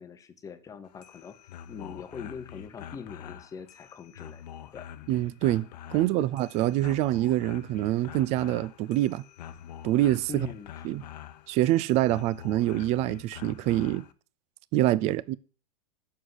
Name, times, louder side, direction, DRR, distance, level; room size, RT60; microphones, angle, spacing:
voice 1, 0.0-1.4 1.7-4.4 4.7-4.9 6.2-6.3 10.3-10.7, left 6 dB, 15° left, 0.8 m, -42 dB
sound 1, 0.8-14.1, left 9 dB, 75° left, 0.9 m, -45 dB
voice 2, 5.1-9.2 9.8-10.5 10.8-11.0 11.5-14.0 14.7-15.3, right 15 dB, 30° right, 0.4 m, -25 dB
7.5 x 6.5 x 7.7 m
supercardioid pair, 145°, 21 cm